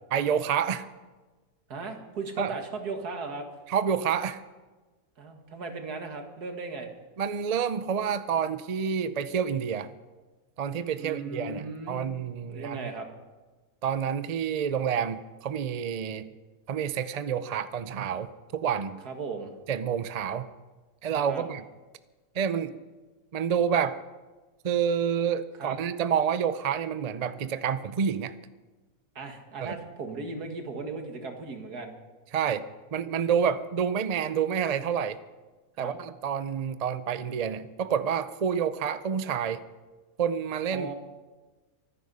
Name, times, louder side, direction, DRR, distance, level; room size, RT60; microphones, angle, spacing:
voice 1, 0.1-0.9 2.4-2.5 3.7-4.4 7.2-9.9 10.6-12.9 13.8-16.3 16.7-19.0 19.7-20.5 21.0-21.6 22.3-22.7 23.3-24.0 24.6-28.3 29.6-29.8 32.3-35.2 35.8-39.6 40.2-40.9, right 7 dB, 60° right, 12 dB, 0.4 m, -28 dB
voice 2, 1.7-3.5 5.2-6.9 11.0-12.1 12.5-13.1 19.0-19.6 21.3-21.4 25.6-25.8 29.2-31.9 35.8-36.0 40.7-40.9, right 3 dB, 80° right, 4 dB, 2.4 m, -37 dB
24.0 x 10.0 x 5.5 m, 1.3 s
omnidirectional pair, 1.6 m